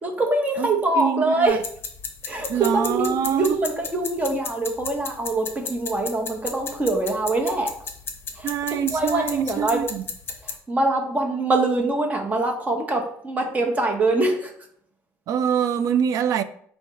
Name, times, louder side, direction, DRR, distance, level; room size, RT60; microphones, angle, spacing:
voice 1, 0.0-1.6 2.2-7.7 8.4-9.8 10.4-14.5, right 2 dB, 25° right, 0.8 m, -24 dB
voice 2, 1.0-1.6 2.5-3.6 8.4-10.0 15.3-16.4, right 8 dB, 60° right, 0.3 m, -24 dB
sound 1, 1.5-10.5, left 5 dB, 35° left, 0.7 m, -35 dB
4.7 x 2.1 x 4.5 m
cardioid pair, 115°, 6 cm